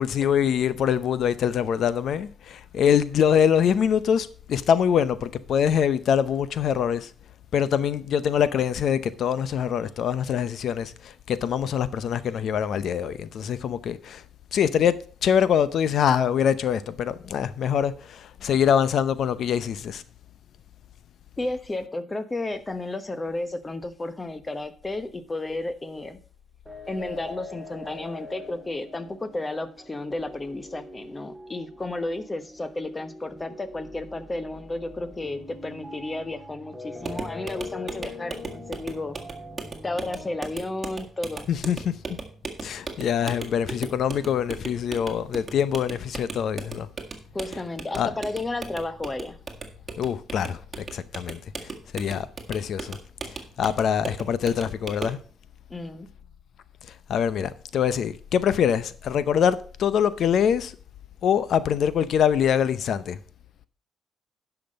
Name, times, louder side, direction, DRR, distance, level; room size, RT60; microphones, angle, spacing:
voice 1, 0.0-7.1 7.5-14.2 14.5-20.0 41.5-42.0 42.6-46.9 47.5-47.6 47.9-48.1 50.0-51.4 51.9-53.0 53.6-55.2 57.1-60.7 61.2-63.2, left 8 dB, 65° left, 0.7 m, -24 dB
voice 2, 21.4-26.2 26.9-39.2 39.8-41.5 47.3-49.4 55.7-56.1, left 2 dB, 20° left, 1.1 m, -32 dB
sound 1, 26.7-40.4, left 2 dB, ahead, 1.8 m, -43 dB
sound 2, 37.0-55.2, right 4 dB, 30° right, 1.8 m, -38 dB
10.5 x 5.9 x 5.3 m
cardioid pair, 90°, 0 cm